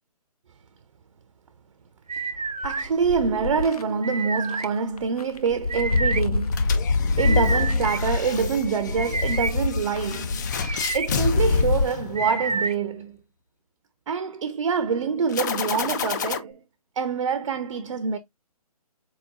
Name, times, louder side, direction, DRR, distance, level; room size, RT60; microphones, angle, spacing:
sound 1, 2.1-2.9 4.0-4.7 5.7-6.2 7.2-8.0 9.0-9.5 10.5-11.1 12.2-12.7, right 4 dB, 90° right, 0.9 m, -29 dB
sound 2, 2.6-3.8 4.5-4.6 5.0-11.8, left 3 dB, 75° left, 0.6 m, -25 dB
voice 1, 2.6-6.9 7.2-13.2 14.1-16.6 17.0-18.2, right 6 dB, 55° right, 0.6 m, -26 dB
sound 3, 6.5-12.6 15.3-16.4, left 7 dB, 30° left, 0.5 m, -31 dB
4.2 x 4.1 x 2.3 m
figure-of-eight pair, 145°, 20 cm